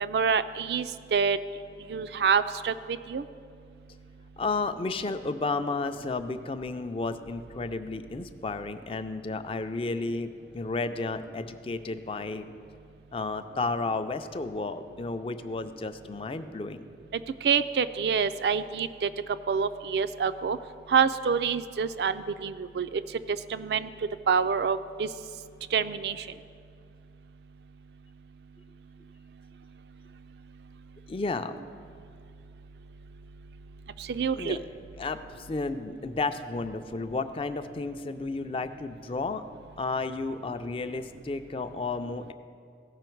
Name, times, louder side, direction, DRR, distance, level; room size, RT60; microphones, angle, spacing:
voice 1, 0.0-1.4 1.9-3.2 17.4-19.1 19.5-20.6 20.9-23.0 23.5-23.9 24.3-25.1 25.7-26.2 34.1-34.6, right 6 dB, 70° right, 12 dB, 0.4 m, -26 dB
voice 2, 4.4-12.5 13.1-16.9 31.1-31.5 34.4-34.6 35.0-39.5 39.8-42.3, left 3 dB, 30° left, 9 dB, 0.4 m, -32 dB
16.5 x 5.6 x 4.5 m, 2.4 s
head